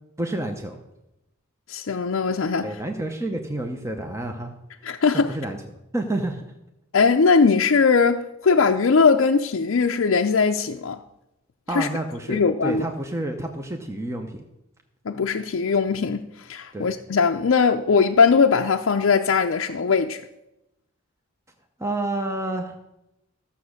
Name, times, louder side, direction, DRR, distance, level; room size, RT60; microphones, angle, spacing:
voice 1, 0.2-0.8 2.6-4.5 4.9-5.6 5.9-6.4 11.7-14.4 16.7-16.9 21.8-22.8, right 1 dB, 15° right, 0.8 m, -29 dB
voice 2, 1.7-2.7 4.8-5.3 6.9-11.0 11.7-11.9 12.3-12.8 15.1-20.2, left 5 dB, 65° left, 0.5 m, -20 dB
14.0 x 7.1 x 6.4 m
head